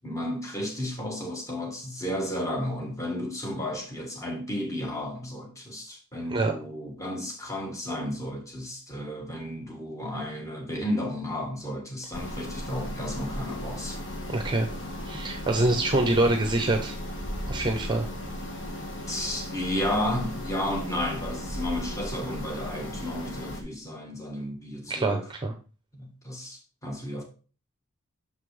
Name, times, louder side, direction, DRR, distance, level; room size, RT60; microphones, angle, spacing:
voice 1, 0.0-14.0 19.1-25.3 26.0-27.2, left 1 dB, 15° left, 1.5 m, -33 dB
sound 1, 12.1-23.6, left 1 dB, 60° left, 1.5 m, -36 dB
voice 2, 14.3-14.7 15.1-17.0 17.5-18.1 24.9-25.5, right 2 dB, 20° right, 0.7 m, -25 dB
6.7 x 5.8 x 3.2 m
head